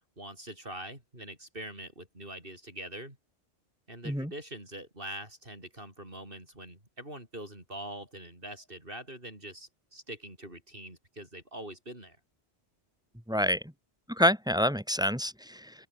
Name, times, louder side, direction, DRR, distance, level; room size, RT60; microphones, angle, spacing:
voice 1, 0.2-3.2 3.9-12.2, right 1 dB, 55° right, 7.9 m, -44 dB
voice 2, 13.3-13.6 14.1-15.7, equal, 5° right, 1.7 m, -27 dB
open air
omnidirectional pair, 1.1 m